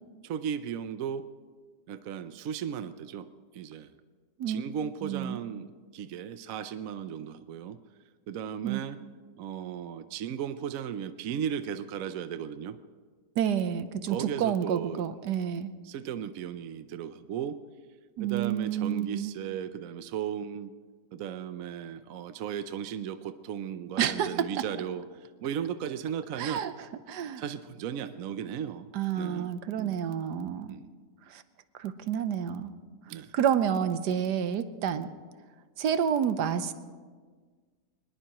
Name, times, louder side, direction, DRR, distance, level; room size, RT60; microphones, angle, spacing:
voice 1, 0.2-1.3 1.9-3.3 3.5-3.9 4.5-5.7 5.9-7.8 8.3-9.0 9.4-12.8 14.1-15.0 15.8-17.6 18.2-20.7 21.1-26.6 27.4-28.9 29.2-29.5 29.8-30.0 30.7-30.9 33.1-33.3, right 8 dB, 65° right, 11 dB, 0.9 m, -36 dB
voice 2, 5.0-5.4 8.6-8.8 13.4-15.7 18.2-19.3 24.0-24.5 26.4-26.7 27.1-27.4 28.9-30.8 31.3-31.4 31.8-32.7 33.3-35.1 35.8-36.7, right 8 dB, 85° right, 12 dB, 1.4 m, -29 dB
23.5 x 20.5 x 3.0 m, 1.6 s
omnidirectional pair, 1.8 m